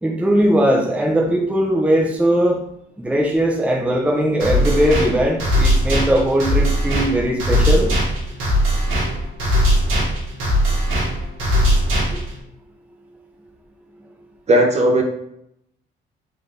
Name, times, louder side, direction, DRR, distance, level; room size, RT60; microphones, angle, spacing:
voice 1, 0.0-2.6 3.0-7.9, equal, 5° right, -1 dB, 0.6 m, -19 dB
sound 1, 4.4-12.4, equal, 85° right, 1.5 m, -19 dB
voice 2, 14.5-15.0, right 1 dB, 35° right, 1 dB, 0.8 m, -15 dB
3.9 x 2.6 x 3.5 m, 0.75 s
cardioid pair, 90°, 20 cm